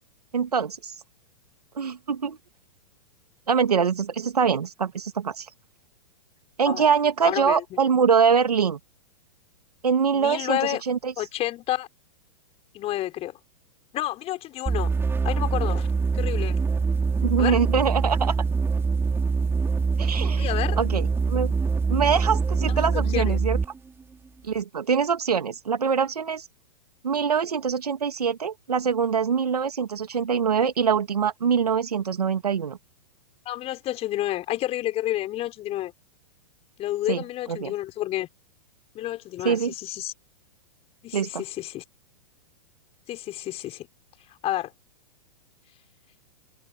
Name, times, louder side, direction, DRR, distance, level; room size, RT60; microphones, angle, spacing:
voice 1, 0.3-0.9 1.8-2.4 3.5-5.5 6.6-8.8 9.8-11.1 17.2-18.4 20.0-20.5 20.8-21.5 21.9-23.6 24.5-26.4 27.0-32.8 37.1-37.2 37.5-37.7 39.4-39.7 41.1-41.4, right 6 dB, 80° right, 2.5 m, -24 dB
voice 2, 7.2-7.6 10.1-10.8 11.2-11.9 12.7-13.4 13.9-14.9 15.2-15.9 16.1-16.6 17.4-17.6 20.4-20.8 22.7-23.4 33.4-35.9 36.8-38.3 38.9-40.1 41.0-41.8 43.1-43.9 44.4-44.7, left 14 dB, 30° left, 6.2 m, -30 dB
sound 1, 14.7-23.8, right 4 dB, 10° right, 4.2 m, -24 dB
hypercardioid pair, 115°, 19 cm